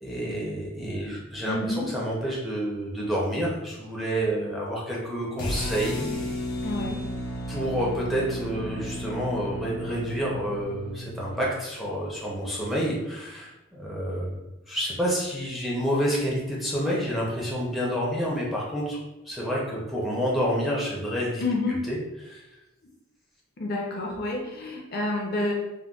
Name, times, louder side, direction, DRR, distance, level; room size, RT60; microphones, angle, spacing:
voice 1, 0.0-6.3 7.5-14.4 14.7-19.0 19.2-21.4 21.9-22.5, equal, ahead, -5 dB, 0.5 m, -29 dB
voice 2, 1.5-1.9 6.6-7.0 21.4-21.8 23.6-25.5, left 2 dB, 45° left, 0 dB, 0.5 m, -29 dB
sound 1, 5.4-11.5, equal, 90° left, 0.9 m, -33 dB
3.6 x 2.2 x 2.3 m, 0.98 s
head